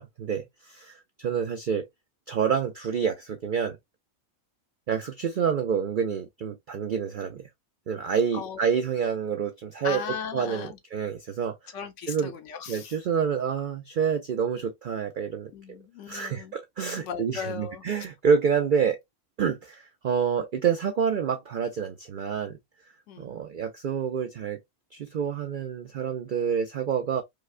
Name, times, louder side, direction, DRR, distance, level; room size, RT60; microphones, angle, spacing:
voice 1, 0.0-1.9 2.3-3.8 4.9-7.5 7.9-10.0 10.3-11.7 12.1-12.3 12.7-15.5 16.1-19.0 19.4-22.6 23.2-24.6 24.9-27.2, right 7 dB, 70° right, 0.4 m, -28 dB
voice 2, 9.8-10.8 11.7-12.9 15.5-16.5 17.0-17.8 23.1-23.3, left 7 dB, 65° left, 0.9 m, -37 dB
4.8 x 2.2 x 2.4 m
omnidirectional pair, 1.4 m